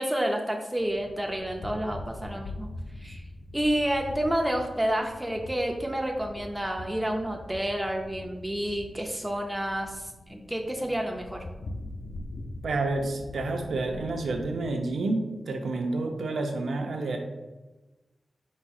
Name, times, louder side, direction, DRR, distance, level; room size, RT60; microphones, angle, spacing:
voice 1, 0.0-2.7 3.0-3.2 3.5-11.4, right 1 dB, 10° right, 1 dB, 0.4 m, -29 dB
sound 1, 0.8-14.7, left 2 dB, 55° left, 0.4 m, -43 dB
voice 2, 12.6-17.2, right 2 dB, 90° right, 3 dB, 0.6 m, -29 dB
4.7 x 4.2 x 2.3 m, 1.1 s
wide cardioid pair, 125°, 0 cm